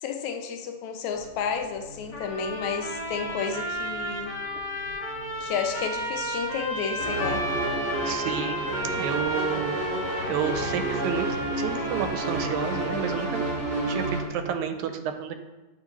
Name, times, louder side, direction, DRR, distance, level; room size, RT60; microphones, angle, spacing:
voice 1, 0.0-4.3 5.4-7.5, left 6 dB, 80° left, 5 dB, 1.9 m, -31 dB
sound 1, 1.1-14.6, left 2 dB, 40° right, 1.2 m, -48 dB
sound 2, 2.1-13.7, equal, 55° left, 0.9 m, -33 dB
sound 3, 7.0-14.2, right 2 dB, 70° right, 0.7 m, -30 dB
voice 2, 8.0-8.6 9.0-9.7 10.3-11.3 11.6-13.4 13.9-15.3, right 8 dB, 85° right, 8 dB, 1.9 m, -30 dB
8.7 x 4.2 x 2.9 m, 1.1 s
omnidirectional pair, 3.3 m